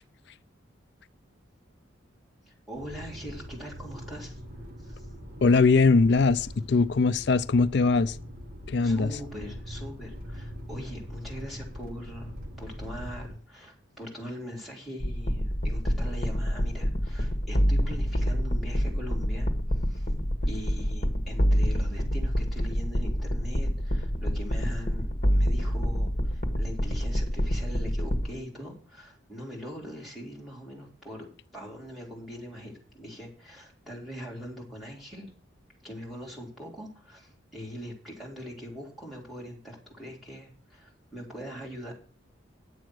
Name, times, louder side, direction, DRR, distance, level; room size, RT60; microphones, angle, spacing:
voice 1, 2.5-4.4 4.8-5.1 8.8-20.1 20.5-31.3 31.5-35.3 35.8-41.9, equal, ahead, 3.8 m, -42 dB
sound 1, 2.7-13.4, equal, 45° right, 1.6 m, -42 dB
voice 2, 5.4-8.2 8.7-9.1, left 4 dB, 55° left, 0.4 m, -21 dB
sound 2, 15.0-28.3, equal, 40° left, 1.3 m, -27 dB
10.5 x 7.7 x 6.2 m
head